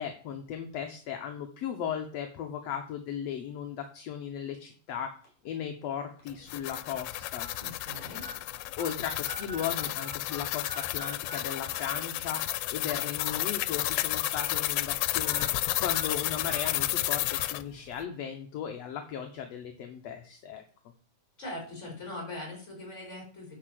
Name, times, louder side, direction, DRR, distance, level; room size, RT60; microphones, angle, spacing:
voice 1, 0.0-5.1 5.4-7.5 8.8-15.5 15.8-20.6, left 8 dB, 65° left, 4 dB, 1.9 m, -36 dB
sound 1, 5.2-5.5 6.2-6.3 7.4-7.5 8.2-8.3 8.8-8.9 9.3-10.4 10.7-11.4 11.7-11.8 13.1-13.4 13.8-13.9 15.2-15.5 15.9-16.0 16.5-16.6 17.3-17.4, right 1 dB, 40° left, 4.9 m, -43 dB
sound 2, 6.3-17.6, left 16 dB, 90° left, 2.2 m, -32 dB
voice 2, 7.6-8.2 21.4-23.6, left 1 dB, 20° left, -1 dB, 5.0 m, -41 dB
9.7 x 4.5 x 7.6 m, 0.42 s
omnidirectional pair, 3.7 m